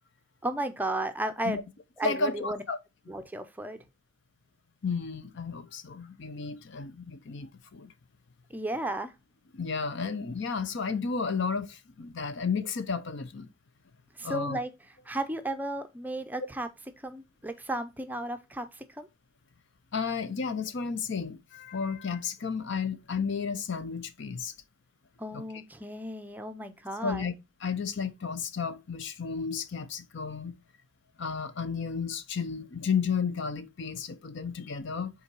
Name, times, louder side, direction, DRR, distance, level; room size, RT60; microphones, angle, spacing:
voice 1, 0.4-1.7 2.0-2.6 3.1-3.8 8.5-9.1 14.2-14.7 15.1-16.7 17.0-19.1 25.2-27.3, right 1 dB, 10° right, 0.5 m, -34 dB
voice 2, 2.0-2.8 4.8-7.9 9.5-13.5 14.2-14.6 19.9-24.5 25.3-25.4 27.0-27.3 27.6-30.6 31.2-35.1, left 5 dB, 55° left, 0.6 m, -32 dB
5.5 x 3.8 x 4.5 m
head